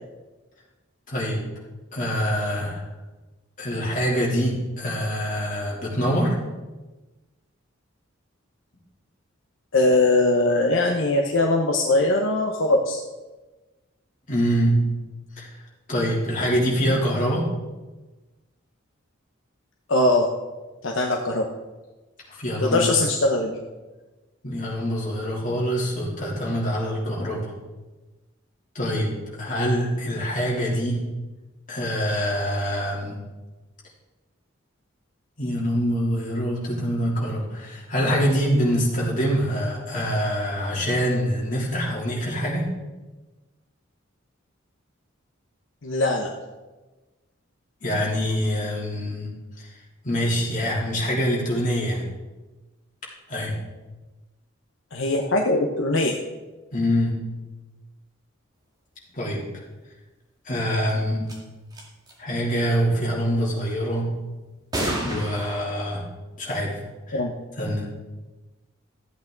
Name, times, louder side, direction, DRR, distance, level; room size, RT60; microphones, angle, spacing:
voice 1, 1.1-1.4 1.9-2.8 3.6-6.3 14.3-14.7 15.4-15.5 15.9-17.5 22.3-22.9 24.4-27.5 28.7-29.1 29.4-31.0 31.7-33.2 35.4-42.6 47.8-49.3 50.0-52.0 53.3-53.5 56.7-57.1 59.1-59.4 60.4-61.2 62.2-64.1 65.0-66.0 66.4-66.8 67.1-67.2 67.6-67.9, equal, 40° left, -4 dB, 3.3 m, -25 dB
voice 2, 9.7-13.0 19.9-20.3 20.8-21.5 22.6-23.6 45.8-46.3 54.9-56.2 67.1-67.3, left 2 dB, 70° left, 1 dB, 0.9 m, -21 dB
sound 1, 60.9-61.0 61.3-61.4 61.7-62.1 64.7-65.6, right 1 dB, 20° right, 2.2 m, -29 dB
13.5 x 8.5 x 3.9 m, 1.2 s
head